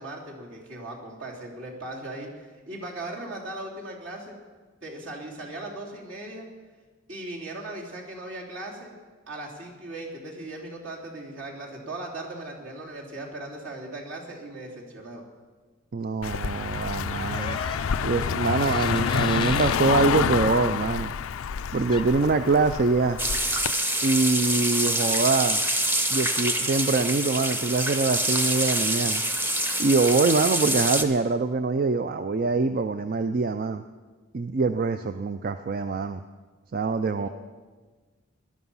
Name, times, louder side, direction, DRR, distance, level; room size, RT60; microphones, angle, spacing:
voice 1, 0.0-4.4 4.8-6.5 7.1-8.9 9.3-15.2 37.1-37.3, right 2 dB, 65° right, -2 dB, 3.3 m, -38 dB
voice 2, 15.9-17.6 18.0-21.1 21.7-23.2 24.0-25.6 26.1-29.2 29.8-33.8 34.3-36.2 36.7-37.3, right 3 dB, 45° right, 10 dB, 0.4 m, -24 dB
Car passing by, 16.2-23.7, left 7 dB, 85° left, 0.4 m, -28 dB
sound 1, 17.3-19.8 21.9-22.1, left 5 dB, 25° left, 0.6 m, -35 dB
sound 2, 23.2-31.0, right 1 dB, 10° right, 0.8 m, -26 dB
19.0 x 11.5 x 5.5 m, 1.4 s
head